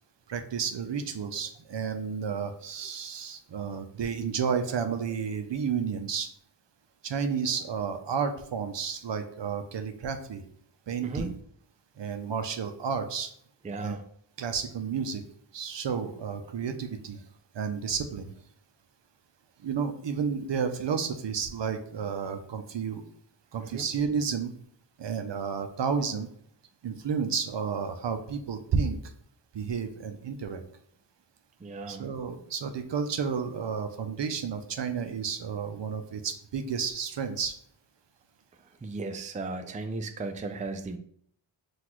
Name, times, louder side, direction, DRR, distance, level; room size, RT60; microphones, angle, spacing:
voice 1, 0.3-6.3 7.0-10.4 10.9-11.4 12.0-13.3 13.8-14.0 14.4-15.2 15.5-17.2 17.5-18.3 19.6-23.0 23.5-24.5 25.0-26.3 26.8-29.1 29.5-30.6 31.9-37.6, right 6 dB, 65° right, 7 dB, 0.6 m, -31 dB
voice 2, 13.6-14.0 23.6-23.9 31.6-32.1 38.6-41.0, right 3 dB, 15° right, 7 dB, 0.4 m, -36 dB
5.8 x 2.5 x 3.0 m, 0.64 s
cardioid pair, 50°, 47 cm